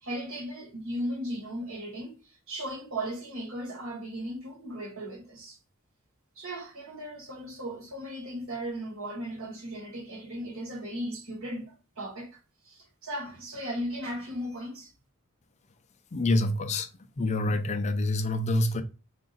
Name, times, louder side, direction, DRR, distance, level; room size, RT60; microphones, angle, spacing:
voice 1, 0.0-5.6 6.3-12.3 12.6-14.9, equal, 65° right, 1.5 m, -37 dB
voice 2, 16.1-16.9 17.2-18.8, left 2 dB, 35° left, 0.4 m, -26 dB
3.7 x 2.4 x 3.9 m
head